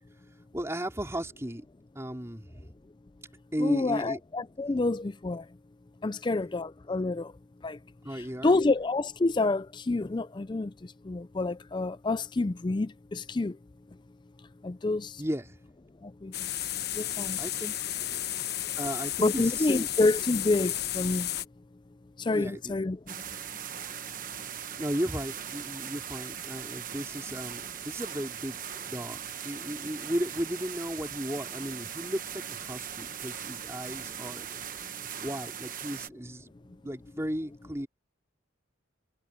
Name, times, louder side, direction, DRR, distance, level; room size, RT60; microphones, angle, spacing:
voice 1, 0.5-1.6 1.9-2.7 3.5-4.2 8.0-8.6 15.2-15.6 17.4-17.7 18.8-19.9 22.3-22.8 24.8-34.5 35.2-37.9, equal, 15° right, 4.5 m, -35 dB
voice 2, 3.6-5.5 6.0-7.3 7.6-7.8 8.4-13.6 14.6-15.2 16.0-16.3 16.9-17.4 19.2-21.3 22.2-23.1, left 2 dB, 20° left, 0.4 m, -28 dB
sound 1, 16.3-21.5, left 12 dB, 50° left, 1.1 m, -33 dB
sound 2, 23.1-36.1, right 9 dB, 40° right, 1.1 m, -40 dB
head